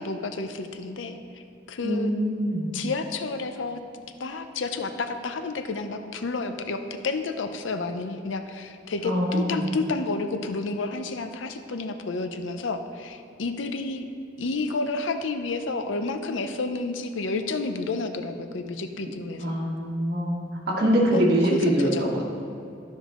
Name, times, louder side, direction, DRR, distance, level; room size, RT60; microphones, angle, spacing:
voice 1, 0.0-1.4 1.7-2.1 2.7-3.8 4.2-14.1 14.4-19.5 21.1-21.2 21.5-21.6 21.9-22.0, left 3 dB, 85° left, 8 dB, 0.6 m, -30 dB
voice 2, 1.8-2.8 9.0-9.7 19.4-22.2, equal, 55° right, -3 dB, 1.6 m, -24 dB
12.0 x 5.4 x 3.7 m, 2.6 s
head